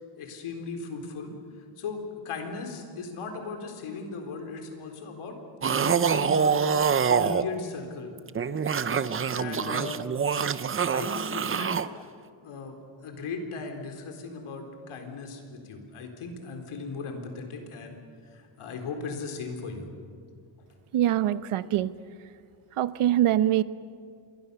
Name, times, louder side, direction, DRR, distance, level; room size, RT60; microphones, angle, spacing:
voice 1, 0.2-1.3 1.6-6.6 7.1-8.1 9.3-10.0 10.9-11.9 12.4-18.0 18.3-19.9, left 4 dB, 85° left, 4 dB, 4.0 m, -37 dB
sound 1, 5.6-7.4 8.2-11.9, right 6 dB, 25° right, 0.5 m, -25 dB
voice 2, 20.9-21.9 22.8-23.6, right 12 dB, 90° right, 15 dB, 1.0 m, -23 dB
28.5 x 22.5 x 6.9 m, 2.2 s
wide cardioid pair, 170°, 49 cm